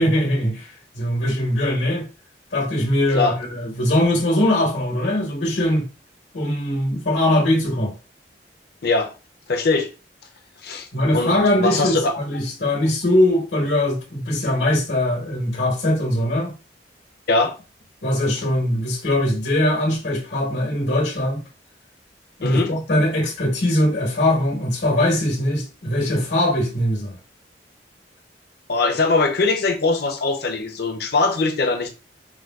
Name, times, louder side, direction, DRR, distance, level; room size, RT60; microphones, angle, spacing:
voice 1, 0.0-2.1 2.5-5.9 6.3-7.9 10.9-16.5 18.0-21.4 22.4-27.2, left 1 dB, 80° left, 1.3 m, -21 dB
voice 2, 8.8-9.1 9.5-9.9 10.6-10.9 11.1-12.2 17.3-17.6 22.4-22.7 28.7-31.9, left 3 dB, 60° left, 0.6 m, -21 dB
4.8 x 2.3 x 2.3 m
head